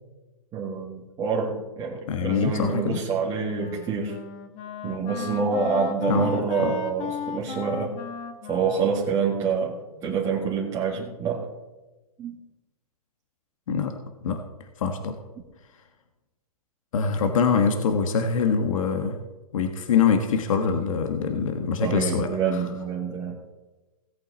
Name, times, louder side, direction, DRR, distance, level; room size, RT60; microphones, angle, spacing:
voice 1, 0.5-4.2 4.8-8.0 8.5-9.8 10.0-11.5 12.2-12.4 21.8-23.4, right 5 dB, 15° right, -5 dB, 1.9 m, -27 dB
voice 2, 2.1-3.0 6.1-6.3 6.6-6.8 13.7-13.9 14.2-14.4 14.8-15.1 16.9-19.2 19.5-22.3, left 6 dB, 60° left, 5 dB, 1.5 m, -24 dB
Wind instrument woodwind instrument, 3.1-10.3, left 6 dB, 30° left, 1.2 m, -37 dB
17.5 x 8.3 x 4.1 m, 1.1 s
hypercardioid pair, 140°, 19 cm